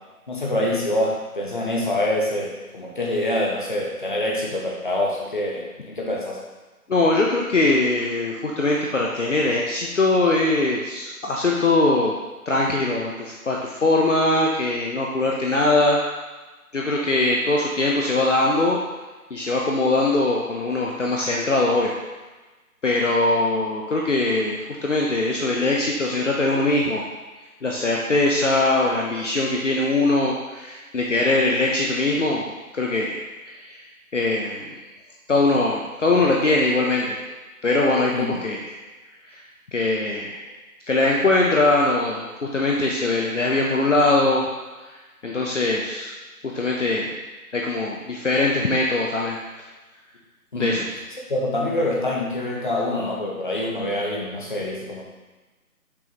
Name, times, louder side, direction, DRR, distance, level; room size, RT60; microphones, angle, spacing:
voice 1, 0.3-6.4 38.1-38.4 50.5-50.8 51.3-55.1, left 1 dB, 35° left, -3 dB, 1.1 m, -25 dB
voice 2, 6.9-12.2 12.5-16.0 16.7-18.8 19.3-21.9 22.8-27.0 27.6-33.8 34.1-34.7 35.3-37.2 37.6-38.7 39.3-39.4 39.7-40.5 40.9-42.3 42.5-44.4 45.2-46.1 46.5-47.2 47.5-49.7 50.5-50.9, left 2 dB, 55° left, -2 dB, 0.8 m, -21 dB
6.9 x 5.2 x 3.0 m, 1.2 s
figure-of-eight pair, 165°, 45 cm